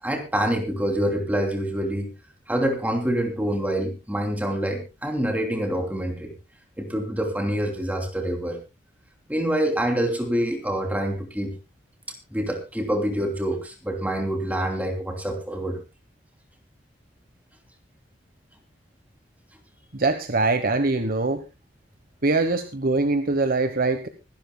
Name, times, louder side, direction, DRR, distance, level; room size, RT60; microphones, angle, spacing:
voice 1, 0.0-2.1 2.5-6.3 6.8-8.6 9.3-11.5 12.3-15.8, right 1 dB, 10° right, 3 dB, 2.9 m, -26 dB
voice 2, 19.9-21.4 22.2-24.1, right 3 dB, 50° right, 8 dB, 1.2 m, -23 dB
25.0 x 12.0 x 2.3 m, 0.27 s
head